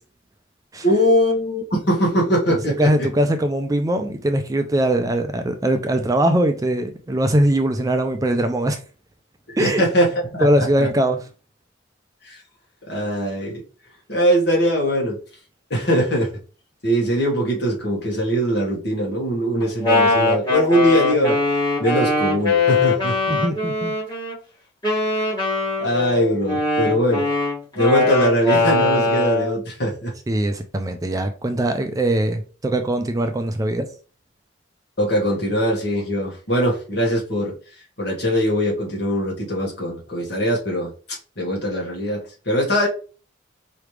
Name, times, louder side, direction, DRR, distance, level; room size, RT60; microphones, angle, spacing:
voice 1, 0.8-2.9 9.5-10.9 12.2-12.4 12.9-13.6 14.1-15.2 15.7-16.3 16.8-21.4 21.8-23.2 25.8-27.3 27.8-30.1 35.0-37.5 38.0-42.9, equal, 55° left, 1.8 m, -21 dB
voice 2, 2.5-8.8 9.6-9.8 10.4-11.2 23.3-23.9 30.3-33.9, right 1 dB, 20° right, 0.4 m, -21 dB
Wind instrument woodwind instrument, 19.6-24.3 24.8-29.5, left 3 dB, 20° left, 2.0 m, -21 dB
4.8 x 3.1 x 3.3 m
head